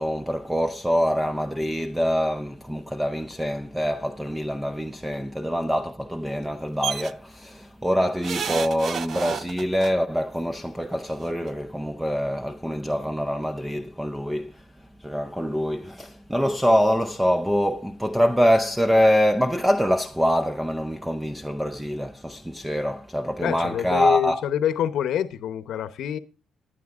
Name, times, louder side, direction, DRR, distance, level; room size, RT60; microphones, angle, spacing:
voice 1, 0.0-14.6 15.0-24.4, equal, 5° right, 0.6 m, -24 dB
sound 1, 6.8-7.1 8.2-9.9 11.1-11.2 11.5-11.6, right 7 dB, 55° right, 0.5 m, -30 dB
voice 2, 23.4-26.2, left 10 dB, 75° left, 0.8 m, -26 dB
20.0 x 10.0 x 2.4 m
cardioid pair, 90°, 0 cm